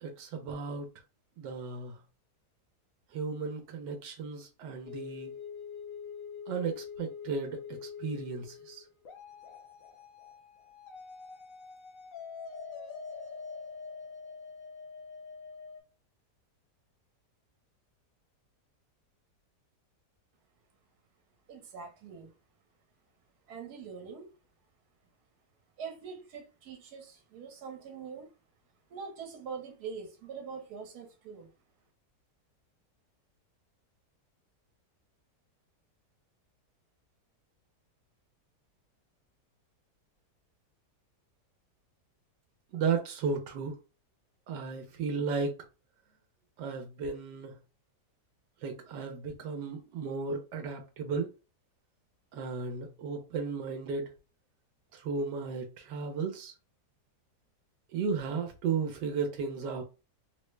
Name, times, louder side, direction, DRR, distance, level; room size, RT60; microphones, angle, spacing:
voice 1, 0.0-0.9 1.4-2.0 3.1-5.3 6.5-8.8 42.7-43.8 44.5-45.6 46.6-47.6 48.6-51.3 52.3-54.1 54.9-56.5 57.9-59.8, right 5 dB, 85° right, 1.3 m, -34 dB
sound 1, 4.8-15.8, left 6 dB, 60° left, 1.0 m, -45 dB
voice 2, 21.5-22.3 23.5-24.3 25.8-28.3 28.9-31.5, right 6 dB, 70° right, 1.4 m, -43 dB
3.6 x 2.1 x 3.1 m
omnidirectional pair, 1.8 m